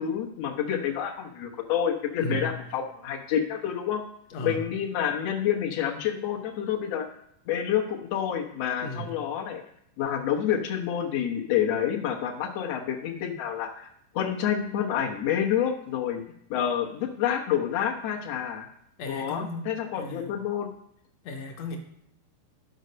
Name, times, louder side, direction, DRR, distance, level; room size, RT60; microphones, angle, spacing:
voice 1, 0.0-4.0 4.4-7.1 7.5-9.6 10.0-13.9 14.1-16.2 16.5-18.7 19.1-20.7, left 9 dB, 90° left, 0 dB, 1.4 m, -28 dB
voice 2, 2.2-2.6 4.3-4.7 8.8-9.2 19.0-20.3 21.2-21.8, left 1 dB, 70° left, 2 dB, 1.6 m, -35 dB
11.5 x 5.2 x 6.7 m, 0.75 s
omnidirectional pair, 4.6 m